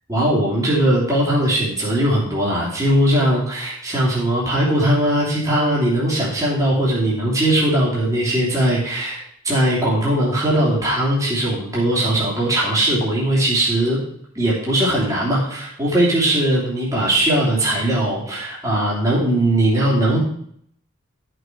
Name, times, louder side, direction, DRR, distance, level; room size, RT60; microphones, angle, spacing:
voice 1, 0.1-14.0 14.3-20.2, right 1 dB, 15° right, -7 dB, 3.0 m, -19 dB
13.0 x 6.2 x 4.6 m, 0.66 s
head